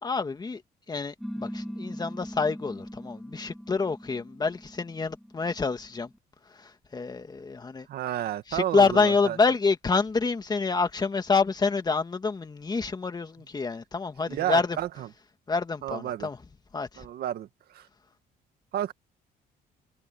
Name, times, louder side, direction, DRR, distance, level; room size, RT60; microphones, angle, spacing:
voice 1, 0.0-0.6 0.9-6.1 6.5-7.9 8.5-14.8 15.5-16.4 16.7-17.0, left 4 dB, 25° left, 2.3 m, -27 dB
sound 1, 1.2-6.2, equal, ahead, 7.6 m, -40 dB
voice 2, 7.9-9.4 14.3-15.1 15.8-16.3 17.0-17.9 18.7-18.9, right 12 dB, 65° right, 2.0 m, -31 dB
cardioid pair, 110°, 17 cm